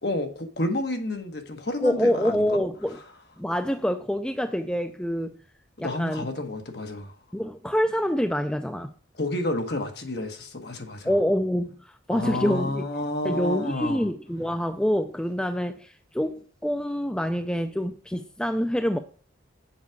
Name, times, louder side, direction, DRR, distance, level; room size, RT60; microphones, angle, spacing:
voice 1, 0.0-2.6 5.8-7.1 9.2-11.1 12.1-14.1, left 2 dB, 55° left, 1.2 m, -30 dB
voice 2, 1.8-3.0 3.4-5.4 5.8-6.3 7.3-8.9 11.0-12.8 13.2-19.0, equal, 5° left, 0.4 m, -26 dB
7.3 x 4.7 x 4.7 m
head